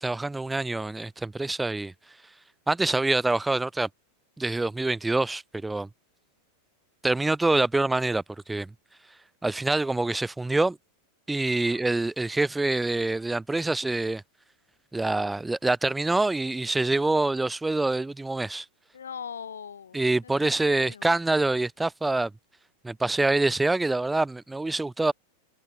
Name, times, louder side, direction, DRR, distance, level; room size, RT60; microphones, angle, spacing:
voice 1, 0.0-1.9 2.7-3.9 4.4-5.9 7.0-8.7 9.4-10.8 11.3-14.2 14.9-18.6 19.9-22.3 22.8-25.1, right 2 dB, 5° right, 1.6 m, -25 dB
voice 2, 18.9-20.5 20.8-21.1, left 7 dB, 70° left, 7.6 m, -41 dB
figure-of-eight pair, 90°, 0 cm